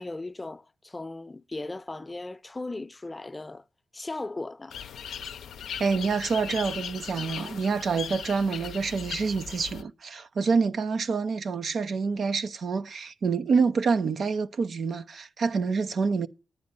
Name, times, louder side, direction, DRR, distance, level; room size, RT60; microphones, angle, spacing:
voice 1, 0.0-3.6 3.9-4.8, left 2 dB, 30° left, 0.7 m, -37 dB
sound 1, 4.7-9.8, left 8 dB, 80° left, 0.5 m, -38 dB
voice 2, 5.8-16.3, right 5 dB, 70° right, 0.7 m, -27 dB
10.5 x 9.5 x 5.2 m
supercardioid pair, 45°, 0 cm